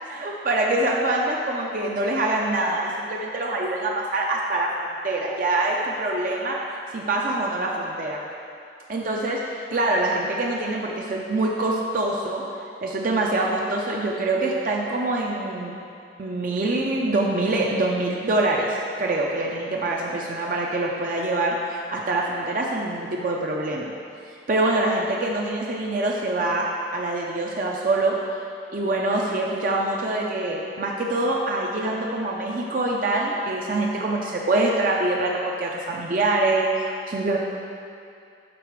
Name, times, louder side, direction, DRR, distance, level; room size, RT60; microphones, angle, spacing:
voice 1, 0.1-6.6 6.9-8.2 8.9-9.4 9.7-12.4 12.8-15.7 16.2-23.9 24.5-28.1 28.7-37.4, right 2 dB, 45° right, -2 dB, 0.5 m, -25 dB
7.5 x 3.9 x 4.6 m, 2.5 s
head